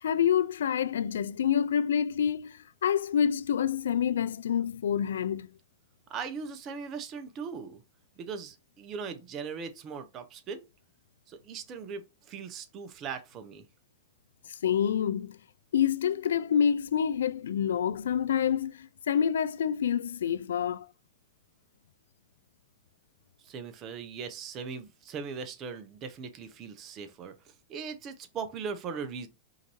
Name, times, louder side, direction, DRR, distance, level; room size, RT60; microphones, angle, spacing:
voice 1, 0.0-5.5 14.5-15.4 15.7-20.9, left 8 dB, 85° left, 0.3 m, -27 dB
voice 2, 6.1-7.8 8.2-10.6 11.3-13.7 23.4-29.3, right 5 dB, 35° right, 0.8 m, -39 dB
5.0 x 2.7 x 2.9 m
hypercardioid pair, 120°, 0 cm